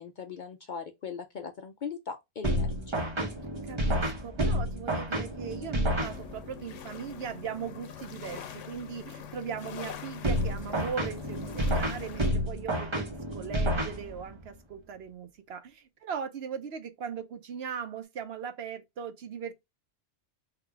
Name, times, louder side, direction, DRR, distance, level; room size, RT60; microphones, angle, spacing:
voice 1, 0.0-3.1, left 6 dB, 55° left, 0.5 m, -40 dB
sound 1, 2.4-6.6 10.2-14.4, equal, 30° right, 0.8 m, -30 dB
voice 2, 3.6-19.5, right 7 dB, 65° right, 0.9 m, -39 dB
sound 2, 6.0-12.3, left 8 dB, 85° left, 1.0 m, -43 dB
3.7 x 2.3 x 4.4 m
omnidirectional pair, 1.2 m